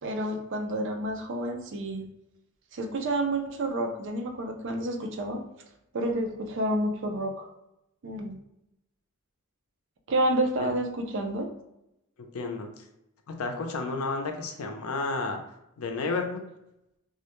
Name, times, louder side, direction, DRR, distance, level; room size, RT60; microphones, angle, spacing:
voice 1, 0.0-2.1 2.7-5.4 5.9-7.5 8.0-8.4 10.1-11.5, right 1 dB, 60° right, 4 dB, 0.4 m, -29 dB
voice 2, 12.3-12.8 13.3-15.4 15.8-16.4, left 3 dB, 80° left, 4 dB, 0.5 m, -31 dB
2.3 x 2.1 x 2.9 m, 0.86 s
head